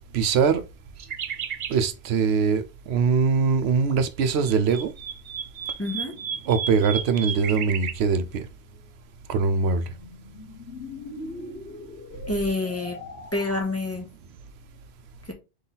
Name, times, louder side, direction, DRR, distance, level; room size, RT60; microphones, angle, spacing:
voice 1, 0.1-0.6 1.7-2.6 2.9-4.9 6.5-8.4 9.3-9.8, right 5 dB, 85° right, 0.9 m, -22 dB
sound 1, 1.0-1.8 4.2-7.9, right 7 dB, 55° right, 0.5 m, -33 dB
voice 2, 5.8-6.1 12.3-13.0 13.3-14.1 15.3-15.4, left 2 dB, 15° left, 0.9 m, -27 dB
sound 2, 8.7-13.6, left 2 dB, 75° left, 1.0 m, -41 dB
3.9 x 3.2 x 3.8 m
omnidirectional pair, 1.1 m